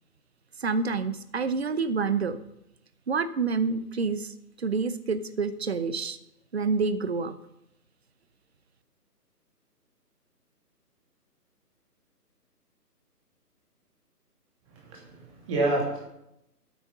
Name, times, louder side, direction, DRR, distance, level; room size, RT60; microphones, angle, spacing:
voice 1, 0.6-2.4 3.1-6.2 6.5-7.3, right 4 dB, 40° right, 13 dB, 0.8 m, -28 dB
voice 2, 14.7-16.0, right 2 dB, 20° right, -2 dB, 2.8 m, -29 dB
12.5 x 9.0 x 5.5 m, 0.84 s
figure-of-eight pair, 145°, 48 cm